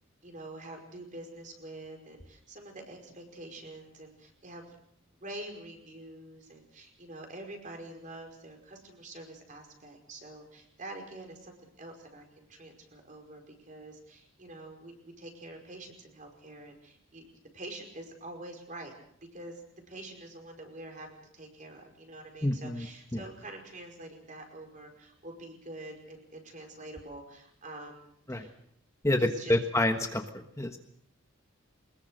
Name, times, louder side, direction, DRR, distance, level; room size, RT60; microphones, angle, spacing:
voice 1, 0.2-4.8 5.2-17.2 17.5-18.9 19.3-19.6 19.9-28.5 29.2-29.5, right 1 dB, 40° right, 3 dB, 5.3 m, -46 dB
voice 2, 22.4-22.9 23.1-23.2 28.3-28.5 29.0-30.8, left 1 dB, 15° left, 5 dB, 1.3 m, -28 dB
23.5 x 21.0 x 6.5 m, 0.71 s
head